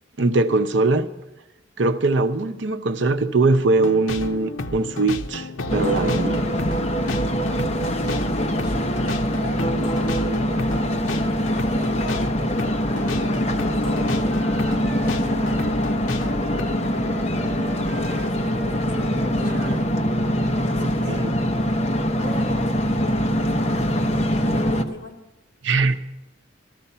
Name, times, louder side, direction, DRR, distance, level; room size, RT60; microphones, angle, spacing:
voice 1, 0.2-1.1 1.8-6.4 20.8-21.3 25.6-26.1, right 3 dB, 70° right, 9 dB, 0.7 m, -21 dB
sound 1, 3.8-16.6, left 2 dB, 90° left, 0.8 m, -32 dB
sound 2, 5.7-24.8, equal, 35° left, 0.9 m, -23 dB
voice 2, 8.3-10.8 11.5-17.4 17.8-20.0 20.6-21.2 22.1-23.9 24.4-25.2, left 1 dB, 50° left, -2 dB, 3.7 m, -40 dB
Wind instrument woodwind instrument, 12.9-16.0 16.4-20.5, right 1 dB, 50° right, 1.1 m, -40 dB
14.0 x 13.5 x 5.6 m, 0.99 s
head